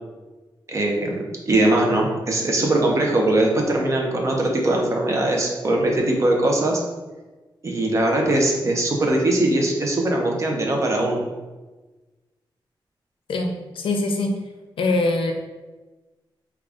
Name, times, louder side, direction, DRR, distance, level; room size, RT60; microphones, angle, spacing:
voice 1, 0.7-6.8 7.6-11.2, right 1 dB, 35° right, 0 dB, 0.6 m, -21 dB
voice 2, 13.3-14.4 14.8-15.3, left 2 dB, 90° left, 3 dB, 0.5 m, -23 dB
3.6 x 2.3 x 3.4 m, 1.2 s
wide cardioid pair, 160°, 9 cm